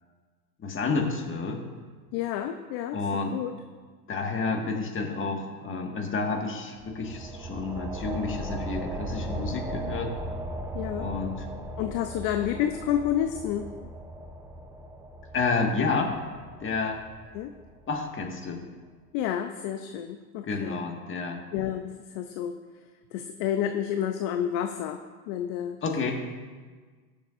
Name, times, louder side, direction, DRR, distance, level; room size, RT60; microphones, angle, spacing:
voice 1, 0.6-1.6 2.9-3.4 4.1-10.1 10.9-11.4 15.3-16.2 16.6-17.0 17.9-18.7 20.4-21.5 25.8-26.1, left 4 dB, 25° left, 2 dB, 1.7 m, -30 dB
voice 2, 2.1-3.5 10.7-11.1 11.8-13.7 17.3-17.5 19.1-20.8 21.5-22.5 23.1-25.8, left 10 dB, 45° left, 8 dB, 0.6 m, -30 dB
sound 1, 6.8-18.0, right 1 dB, 5° right, 0.4 m, -37 dB
19.0 x 7.1 x 2.6 m, 1.5 s
hypercardioid pair, 105°, 50 cm